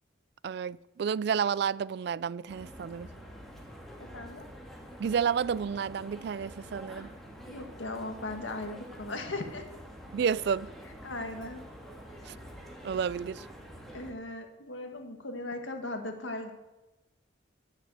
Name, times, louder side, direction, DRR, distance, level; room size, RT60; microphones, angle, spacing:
voice 1, 0.4-3.1 5.0-7.1 10.1-10.7 12.3-12.4 12.8-13.5, right 7 dB, 60° right, 0.3 m, -30 dB
sound 1, 2.5-14.1, equal, ahead, 1.9 m, -47 dB
voice 2, 4.0-4.5 7.5-9.7 11.0-11.6 12.2-12.3 13.9-16.5, left 2 dB, 90° left, 1.8 m, -38 dB
14.0 x 6.7 x 7.9 m
head